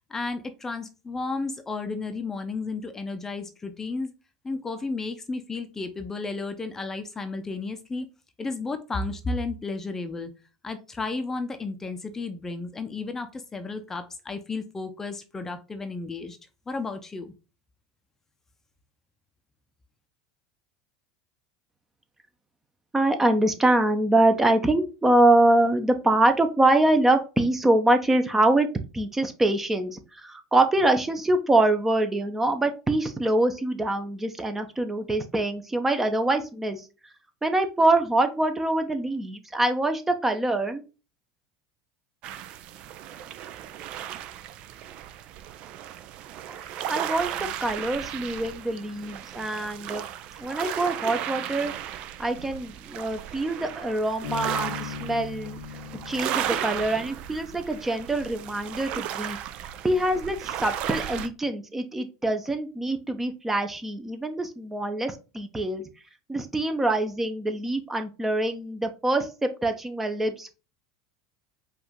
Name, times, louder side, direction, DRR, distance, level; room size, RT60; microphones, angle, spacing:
voice 1, 0.1-4.1 4.4-8.1 8.4-10.3 10.6-16.4 16.7-17.3, left 3 dB, 20° left, 7 dB, 0.6 m, -33 dB
voice 2, 22.9-28.7 28.9-36.8 37.4-40.8 46.5-46.6 46.9-47.3 47.6-50.0 50.4-51.7 52.2-55.6 56.1-59.4 59.8-65.8 66.3-70.6, right 2 dB, 15° right, 8 dB, 0.8 m, -24 dB
sound 1, 42.2-61.3, right 11 dB, 55° right, 0.5 m, -35 dB
Bass guitar, 54.2-57.8, left 7 dB, 75° left, 0.7 m, -39 dB
4.9 x 2.6 x 3.7 m, 0.31 s
hypercardioid pair, 85°, 2 cm